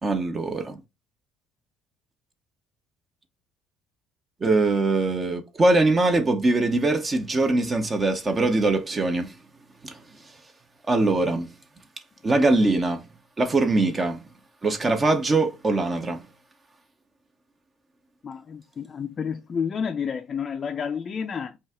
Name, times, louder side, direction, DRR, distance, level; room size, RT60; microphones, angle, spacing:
voice 1, 0.0-0.8 4.4-9.3 9.8-10.0 10.9-11.5 12.2-13.1 13.4-14.2 14.6-16.2, right 2 dB, 25° right, 0.7 m, -22 dB
voice 2, 18.2-21.6, left 6 dB, 35° left, 0.4 m, -30 dB
5.3 x 2.4 x 3.5 m
cardioid pair, 110°, 0 cm